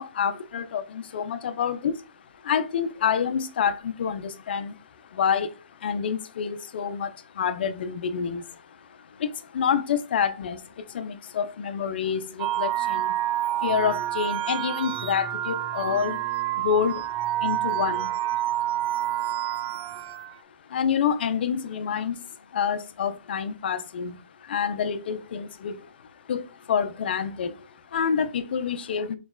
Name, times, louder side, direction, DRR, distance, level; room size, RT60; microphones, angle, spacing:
voice 1, 0.0-29.1, left 7 dB, 70° left, 0.6 m, -28 dB
sound 1, 12.4-20.3, right 13 dB, 25° right, 0.4 m, -28 dB
5.2 x 3.1 x 2.3 m
hypercardioid pair, 135°, 6 cm